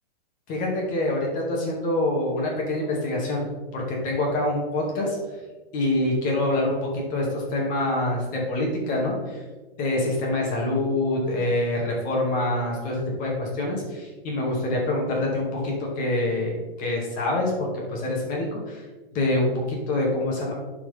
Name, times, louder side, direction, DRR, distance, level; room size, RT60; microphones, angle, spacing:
voice 1, 0.5-3.4 3.7-5.2 5.7-9.4 9.8-18.8 19.1-20.5, left 1 dB, 25° left, -2 dB, 2.2 m, -26 dB
12.0 x 4.8 x 3.5 m, 1.3 s
hypercardioid pair, 155°, 30 cm